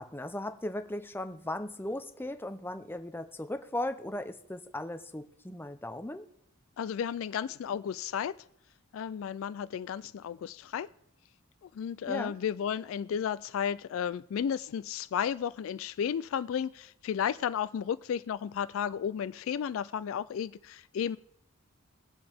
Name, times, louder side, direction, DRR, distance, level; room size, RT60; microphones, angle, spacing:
voice 1, 0.0-6.2 12.1-12.3, left 1 dB, 10° left, 9 dB, 0.7 m, -37 dB
voice 2, 6.8-8.4 8.9-10.9 11.6-21.2, left 8 dB, 70° left, 17 dB, 0.3 m, -33 dB
21.0 x 7.7 x 3.5 m, 0.76 s
head